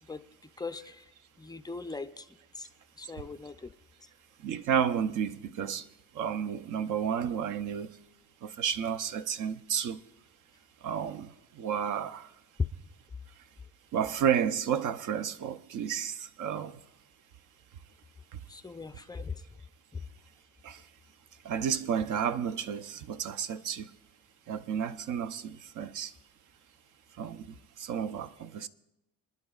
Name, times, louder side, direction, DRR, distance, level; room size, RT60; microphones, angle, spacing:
voice 1, 0.6-1.1 1.4-2.7 3.0-3.8 18.5-19.4 19.9-20.0, left 4 dB, 10° left, 0.4 m, -41 dB
voice 2, 4.4-5.8 6.1-7.9 8.4-10.0 10.8-11.3 11.6-12.3 13.9-16.8 20.6-20.8 21.4-23.9 24.5-26.1 27.2-28.7, right 8 dB, 60° right, 0.7 m, -31 dB
25.0 x 10.5 x 2.4 m
cardioid pair, 110°, 35 cm